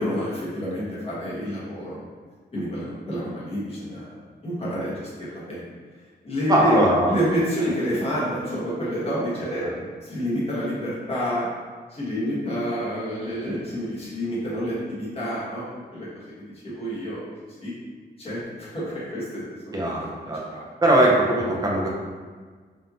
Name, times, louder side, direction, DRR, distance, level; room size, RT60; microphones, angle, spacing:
voice 1, 0.0-2.0 2.5-4.2 4.4-5.6 6.2-6.8 7.1-9.7 10.0-11.5 11.9-16.1 16.4-17.2 17.6-17.7 18.2-19.8 20.5-20.7, equal, 35° left, -8 dB, 1.3 m, -28 dB
voice 2, 6.5-7.1 19.7-20.4 20.8-21.9, right 1 dB, 20° right, -3 dB, 0.6 m, -20 dB
5.2 x 2.6 x 2.8 m, 1.5 s
wide cardioid pair, 180°, 18 cm